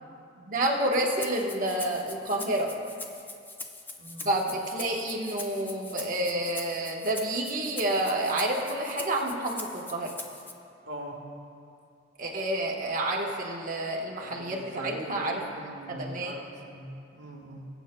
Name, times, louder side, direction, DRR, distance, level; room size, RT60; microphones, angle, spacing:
voice 1, 0.5-2.7 4.2-10.1 12.2-15.4 15.9-16.3, right 1 dB, 45° right, -1 dB, 1.2 m, -29 dB
Rattle (instrument), 0.9-10.5, left 3 dB, 10° left, 0.5 m, -42 dB
voice 2, 10.9-11.2 14.2-14.5 14.8-17.7, right 1 dB, 70° right, 0 dB, 1.3 m, -41 dB
21.5 x 8.1 x 2.2 m, 2.5 s
head